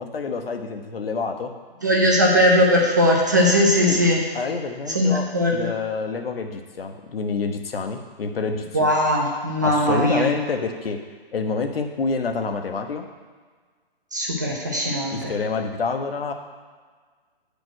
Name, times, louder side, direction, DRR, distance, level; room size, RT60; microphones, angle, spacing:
voice 1, 0.0-1.5 3.8-4.0 4.3-8.9 9.6-11.0 11.3-13.1 15.1-16.3, left 4 dB, 70° left, 5 dB, 1.1 m, -27 dB
voice 2, 1.8-4.2 4.9-5.7 8.7-10.4 14.1-15.3, equal, 20° right, -2 dB, 0.5 m, -19 dB
7.4 x 5.1 x 6.2 m, 1.5 s
hypercardioid pair, 170°, 30 cm